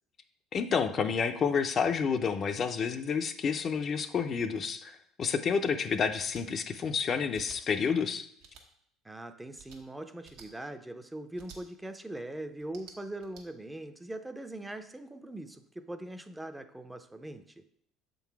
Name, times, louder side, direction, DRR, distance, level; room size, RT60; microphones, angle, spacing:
voice 1, 0.5-8.3, left 6 dB, 45° left, 8 dB, 0.5 m, -29 dB
sound 1, 6.2-6.4 7.3-7.6 8.4-8.6 9.5-9.8 10.2-10.5 11.4-11.6 12.6-13.4, right 6 dB, 85° right, 1.0 m, -52 dB
voice 2, 9.0-17.6, right 1 dB, 10° right, 9 dB, 0.5 m, -41 dB
6.9 x 3.9 x 4.6 m, 0.69 s
supercardioid pair, 85°, 0 cm